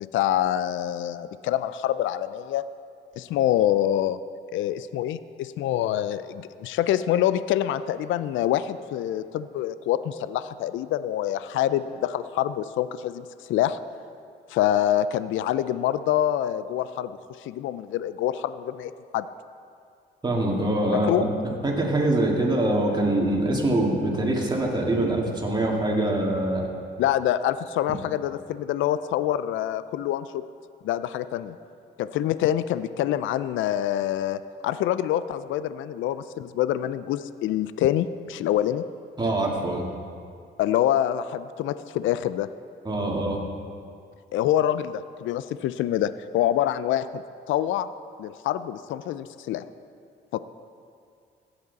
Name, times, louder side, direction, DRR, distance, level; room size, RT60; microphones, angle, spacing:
voice 1, 0.1-2.7 3.2-4.2 4.5-13.8 14.5-19.3 20.9-21.3 27.0-30.4 30.8-31.6 32.0-38.9 40.6-42.5 44.3-47.2 47.5-47.9 48.2-49.6 50.3-50.4, left 11 dB, 75° left, 14 dB, 0.4 m, -26 dB
voice 2, 20.2-26.7 39.2-39.9 42.8-43.4, right 1 dB, 20° right, -2 dB, 2.2 m, -24 dB
16.0 x 7.9 x 4.1 m, 2.3 s
cardioid pair, 90°, 20 cm